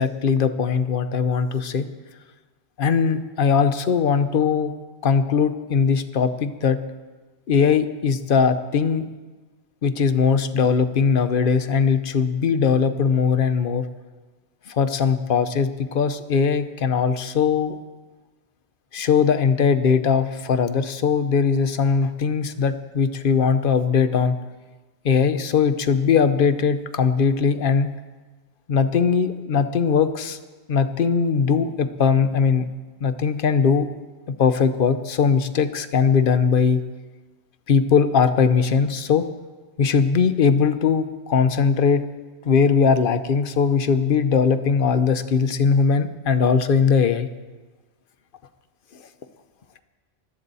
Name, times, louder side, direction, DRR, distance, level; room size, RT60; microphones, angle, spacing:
voice 1, 0.0-1.9 2.8-4.7 5.0-6.8 7.5-9.0 9.8-13.8 14.7-17.8 18.9-24.3 25.0-27.9 28.7-30.4 30.7-32.7 33.0-33.9 34.3-36.8 37.7-39.3 39.8-42.0 42.4-47.3, left 6 dB, 55° left, 10 dB, 0.9 m, -20 dB
20.5 x 13.0 x 4.1 m, 1.3 s
omnidirectional pair, 1.1 m